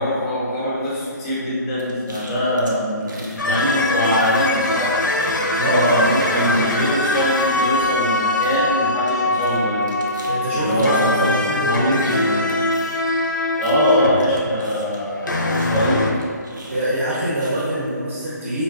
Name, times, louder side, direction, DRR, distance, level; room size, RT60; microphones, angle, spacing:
voice 1, 0.0-10.0 10.5-12.5 13.6-16.1, equal, 10° left, -7 dB, 0.4 m, -23 dB
sound 1, 1.8-3.4 3.7-4.9 5.2-15.2 15.5-17.9, right 1 dB, 80° right, 0.6 m, -41 dB
voice 2, 3.0-3.4 5.5-6.7 10.2-12.1 16.7-18.6, right 1 dB, 45° right, -7 dB, 0.6 m, -24 dB
sound 2, 3.4-14.5 15.0-16.1, left 2 dB, 85° left, 0.5 m, -22 dB
3.9 x 2.3 x 2.3 m, 2.1 s
figure-of-eight pair, 155°, 10 cm